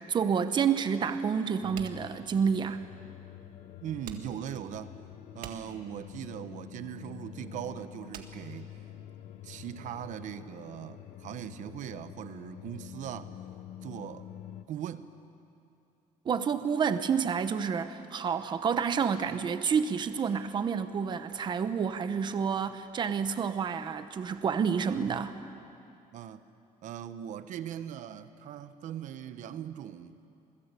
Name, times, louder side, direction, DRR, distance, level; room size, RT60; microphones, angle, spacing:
voice 1, 0.0-2.8 16.2-25.4, right 6 dB, 30° right, 1.0 m, -29 dB
sound 1, 1.6-14.7, left 11 dB, 65° left, 0.9 m, -47 dB
sound 2, 1.7-9.4, right 9 dB, 80° right, 1.8 m, -50 dB
voice 2, 3.8-4.9 5.3-8.8 9.4-13.3 13.8-14.3 14.7-15.1 26.1-26.4 26.8-30.2, right 10 dB, 60° right, 1.1 m, -40 dB
27.5 x 20.5 x 8.3 m
cardioid pair, 170°, 14 cm